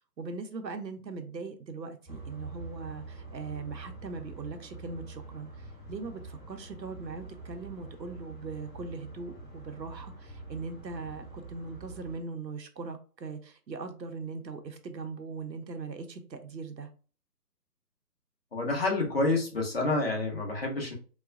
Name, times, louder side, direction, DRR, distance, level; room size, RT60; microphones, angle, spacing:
voice 1, 0.0-16.9, right 4 dB, 80° right, 7 dB, 0.8 m, -40 dB
sound 1, 2.1-12.2, right 3 dB, ahead, 1.1 m, -45 dB
voice 2, 18.5-20.9, left 2 dB, 35° left, 0 dB, 0.8 m, -28 dB
4.0 x 2.2 x 2.4 m, 0.39 s
figure-of-eight pair, 150°, 50 cm